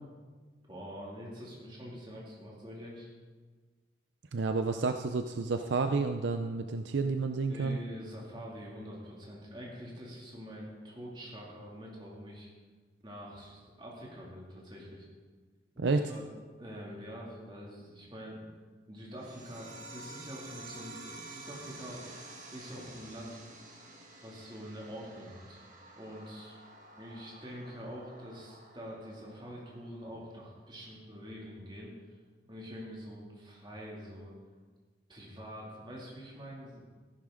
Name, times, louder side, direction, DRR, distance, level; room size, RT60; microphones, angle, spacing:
voice 1, 0.7-3.1 7.5-12.5 13.0-15.1 15.7-16.3 16.6-18.4 18.9-22.0 22.5-23.4 24.2-25.6 25.9-26.5 27.0-31.9 32.5-34.3 35.1-36.9, equal, 25° right, -4 dB, 2.5 m, -45 dB
voice 2, 4.3-7.8 15.8-16.0, right 4 dB, 75° right, 7 dB, 0.5 m, -30 dB
sound 1, 19.2-30.2, right 2 dB, 40° right, 1.5 m, -50 dB
14.0 x 11.0 x 3.8 m, 1.4 s
head